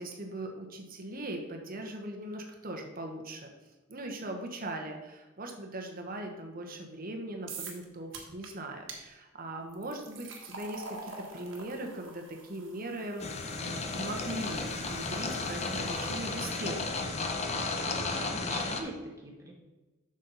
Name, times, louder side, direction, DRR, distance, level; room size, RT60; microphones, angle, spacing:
voice 1, 0.0-3.5 3.9-13.3 13.6-16.9, right 1 dB, 45° right, 3 dB, 1.2 m, -40 dB
sound 1, 7.5-7.8 8.1-8.5 8.9-9.0 9.7-16.8, right 3 dB, 65° right, 1.6 m, -47 dB
sound 2, 13.2-18.8, left 3 dB, 35° left, 0.8 m, -33 dB
voice 2, 17.9-19.5, right 1 dB, 15° right, -2 dB, 1.7 m, -42 dB
8.1 x 6.4 x 4.1 m, 1.1 s
head